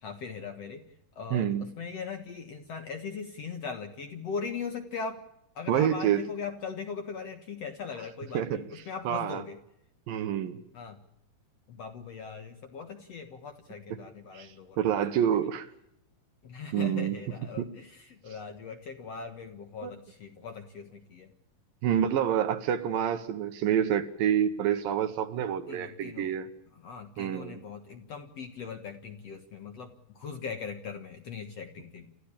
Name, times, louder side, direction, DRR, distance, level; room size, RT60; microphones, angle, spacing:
voice 1, 0.0-0.8 1.2-5.2 5.6-9.6 10.7-11.0 11.7-14.8 16.4-21.3 25.7-26.3 26.8-32.1, left 5 dB, 55° left, 7 dB, 2.0 m, -40 dB
voice 2, 1.3-1.7 5.7-6.3 8.3-9.4 10.1-10.6 13.9-14.0 14.3-15.7 16.7-17.2 17.6-17.7 19.8-20.0 21.8-26.5 27.2-27.6, right 9 dB, 70° right, 11 dB, 2.6 m, -28 dB
28.5 x 14.5 x 8.6 m, 0.82 s
omnidirectional pair, 4.6 m